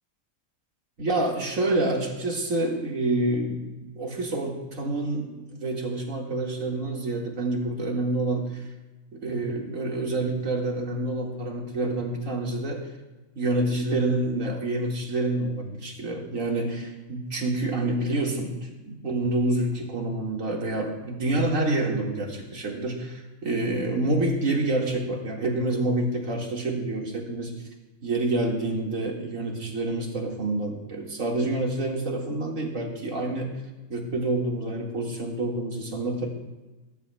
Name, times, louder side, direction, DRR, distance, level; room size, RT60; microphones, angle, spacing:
voice 1, 1.0-8.6 9.1-12.9 13.4-27.6 28.0-33.5 33.9-36.3, right 2 dB, 70° right, 0 dB, 2.2 m, -27 dB
21.0 x 11.5 x 2.2 m, 1.1 s
omnidirectional pair, 1.4 m